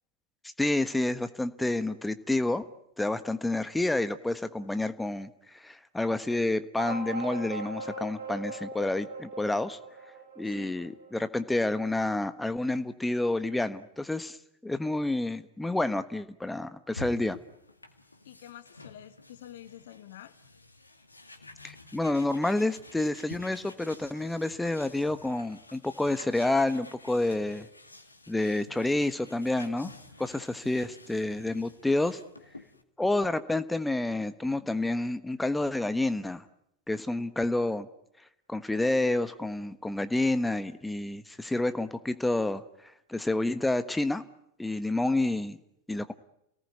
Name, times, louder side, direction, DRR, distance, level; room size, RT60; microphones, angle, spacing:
voice 1, 0.6-2.6 3.0-9.8 10.4-14.4 14.6-17.4 21.6-27.7 28.3-29.9 30.2-32.2 33.0-36.4 36.9-37.9 38.5-42.6 43.1-44.2 44.6-45.6 45.9-46.1, left 2 dB, 5° left, 12 dB, 1.3 m, -29 dB
sound 1, 6.8-11.7, right 2 dB, 65° right, 6.4 m, -40 dB
voice 2, 10.4-10.8 18.2-20.3, left 12 dB, 60° left, 14 dB, 1.6 m, -48 dB
sound 2, 16.9-32.8, left 2 dB, 85° left, 2.1 m, -50 dB
30.0 x 19.0 x 9.6 m, 0.79 s
figure-of-eight pair, 85°, 0 cm